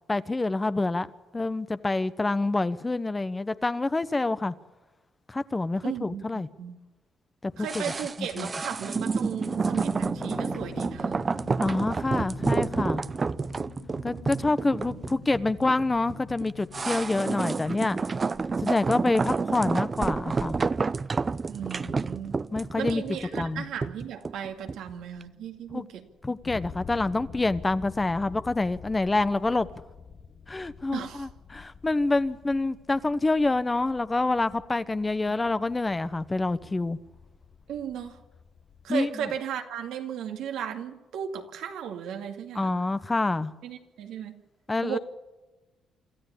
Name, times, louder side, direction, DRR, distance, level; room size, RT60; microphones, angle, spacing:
voice 1, 0.1-1.1 1.3-4.5 5.3-6.5 7.4-7.8 8.2-8.5 11.6-13.0 14.0-18.0 18.6-20.5 22.5-23.0 23.4-23.6 25.7-25.9 26.2-29.7 30.5-37.0 38.9-39.3 42.5-43.5 44.7-45.0, left 2 dB, 20° left, 13 dB, 1.0 m, -27 dB
voice 2, 5.8-6.8 7.6-11.2 14.9-15.0 21.5-22.4 22.8-26.1 30.9-31.3 37.7-38.2 38.8-42.8 43.6-44.4 44.8-45.0, right 8 dB, 85° right, 4 dB, 2.4 m, -35 dB
sound 1, 7.7-24.9 25.2-25.3, right 4 dB, 30° right, 0.7 m, -29 dB
sound 2, 9.6-17.3, left 10 dB, 85° left, 1.8 m, -46 dB
sound 3, 21.6-38.9, left 6 dB, 50° left, 1.4 m, -48 dB
26.0 x 13.5 x 8.6 m, 1.1 s
cardioid pair, 90°, 0 cm